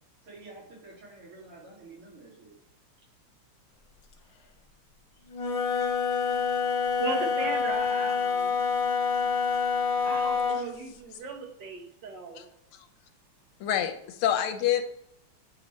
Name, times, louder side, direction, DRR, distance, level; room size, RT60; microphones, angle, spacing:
voice 1, 0.2-2.5, right 3 dB, 80° right, -4 dB, 3.1 m, -49 dB
Wind instrument woodwind instrument, 5.3-10.7, left 5 dB, 65° left, 1.5 m, -27 dB
voice 2, 6.6-8.6 10.0-12.5, right 5 dB, 60° right, 3 dB, 1.6 m, -37 dB
voice 3, 13.6-14.8, left 10 dB, 80° left, 9 dB, 1.5 m, -27 dB
8.7 x 3.0 x 4.2 m, 0.72 s
omnidirectional pair, 2.4 m